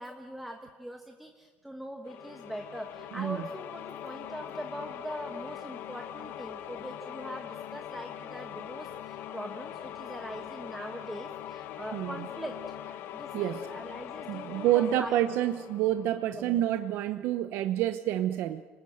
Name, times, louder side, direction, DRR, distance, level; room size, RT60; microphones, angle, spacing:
voice 1, 0.0-12.6 13.1-15.5 16.3-16.7, equal, 5° right, 4 dB, 1.4 m, -42 dB
sound 1, 2.1-16.7, left 11 dB, 80° left, 1.4 m, -42 dB
voice 2, 13.3-13.7 14.3-18.6, right 12 dB, 90° right, 10 dB, 0.8 m, -28 dB
30.0 x 20.0 x 7.9 m, 1.5 s
cardioid pair, 155°, 4 cm